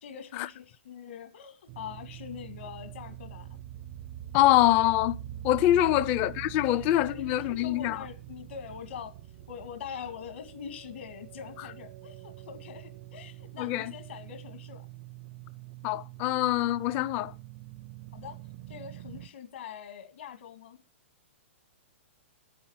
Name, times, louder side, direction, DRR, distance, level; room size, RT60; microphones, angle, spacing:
voice 1, 0.0-3.6 5.9-6.1 6.6-9.1 9.5-14.9 18.1-18.4 18.7-20.8, left 8 dB, 65° left, 2.2 m, -43 dB
sound 1, 1.7-19.3, right 13 dB, 30° right, 0.5 m, -45 dB
voice 2, 4.3-5.2 5.4-8.0 13.6-13.9 15.8-17.3, left 14 dB, 25° left, 0.5 m, -24 dB
10.0 x 8.7 x 7.3 m
hypercardioid pair, 165°, 7 cm